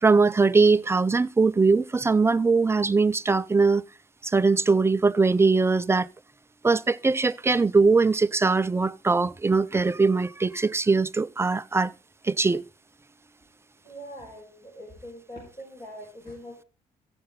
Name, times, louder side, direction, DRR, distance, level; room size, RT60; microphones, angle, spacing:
voice 1, 0.0-3.8 4.2-6.1 6.6-11.9 12.2-12.6, right 4 dB, 15° right, 0.5 m, -21 dB
voice 2, 13.8-16.7, equal, 30° left, 6.6 m, -42 dB
14.5 x 7.7 x 4.2 m
cardioid pair, 85°, 17 cm